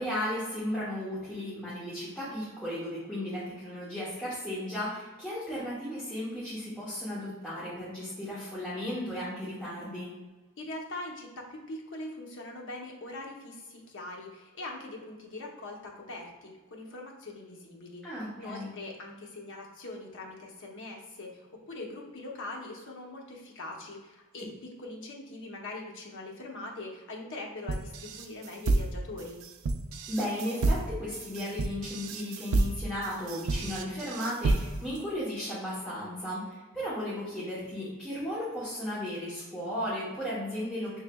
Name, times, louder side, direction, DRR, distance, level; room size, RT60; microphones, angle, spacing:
voice 1, 0.0-10.1 18.0-18.7 30.1-41.0, left 1 dB, 5° left, -11 dB, 1.0 m, -35 dB
voice 2, 10.6-29.4, left 2 dB, 60° left, 0 dB, 0.8 m, -42 dB
sound 1, 27.7-35.0, right 2 dB, 65° right, 0.4 m, -30 dB
6.0 x 3.1 x 2.3 m, 1.2 s
head